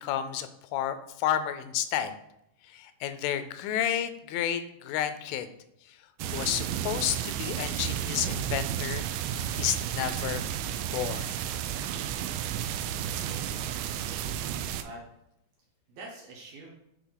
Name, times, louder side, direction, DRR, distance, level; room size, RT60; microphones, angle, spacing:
voice 1, 0.0-2.1 2.7-5.5 6.3-9.0 9.6-10.4 10.9-11.3, left 10 dB, 85° left, 10 dB, 3.0 m, -31 dB
sound 1, 6.2-14.8, right 10 dB, 90° right, 2.5 m, -32 dB
voice 2, 12.9-13.6 14.8-15.0 15.9-16.7, right 2 dB, 70° right, -3 dB, 2.3 m, -46 dB
10.5 x 4.2 x 3.9 m, 0.80 s
omnidirectional pair, 5.6 m